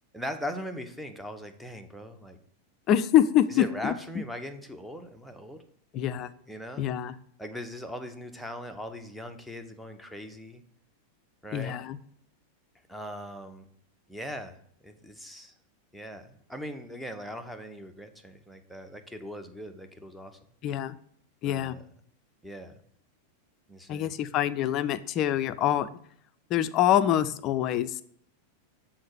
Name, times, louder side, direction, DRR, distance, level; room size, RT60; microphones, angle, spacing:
voice 1, 0.1-2.4 3.5-5.6 6.5-6.8 7.4-10.6 11.4-11.7 12.9-13.7 14.1-14.6 14.8-15.5 15.9-20.4 21.4-21.8 22.4-22.7 23.7-24.2, equal, ahead, 6 dB, 0.7 m, -40 dB
voice 2, 2.9-3.9 5.9-6.3 6.8-7.1 11.5-12.0 20.6-21.0 21.4-21.8 23.9-25.9 26.5-28.0, left 11 dB, 35° left, 13 dB, 0.4 m, -25 dB
6.4 x 3.8 x 4.5 m, 0.65 s
figure-of-eight pair, 90°, 0 cm